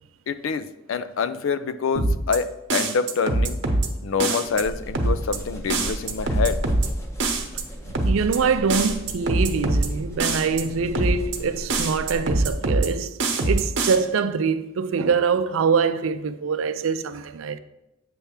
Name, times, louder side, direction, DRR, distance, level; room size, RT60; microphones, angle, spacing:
voice 1, 0.3-3.6 4.0-6.6, left 5 dB, 70° left, 0.4 m, -26 dB
sound 1, 2.0-2.4 2.7-3.9 4.2-4.6 5.0-5.4 5.7-6.9 7.2-7.6 8.0-8.4 8.7-9.9 10.2-10.6 11.0-11.4 11.7-12.9 13.2-14.0, right 2 dB, 60° right, 0.9 m, -23 dB
sound 2, 4.5-12.7, equal, 15° left, 0.7 m, -36 dB
voice 2, 7.8-13.2 13.4-17.6, right 5 dB, 75° right, 0.4 m, -24 dB
7.6 x 3.5 x 5.7 m
head